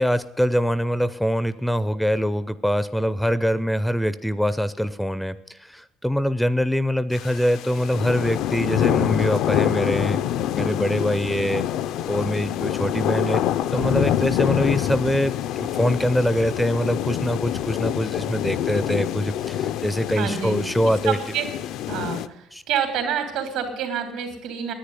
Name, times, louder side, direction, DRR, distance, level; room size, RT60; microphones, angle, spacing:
voice 1, 0.0-10.2 10.6-11.7 12.1-13.4 13.7-21.2 22.5-22.6, equal, ahead, 15 dB, 0.4 m, -24 dB
sound 1, 7.1-22.3, left 11 dB, 75° left, 0.5 m, -26 dB
voice 2, 20.1-20.6 21.0-21.5 21.9-24.7, right 8 dB, 85° right, 6 dB, 3.0 m, -27 dB
10.0 x 9.4 x 9.8 m, 0.82 s
cardioid pair, 155°, 0 cm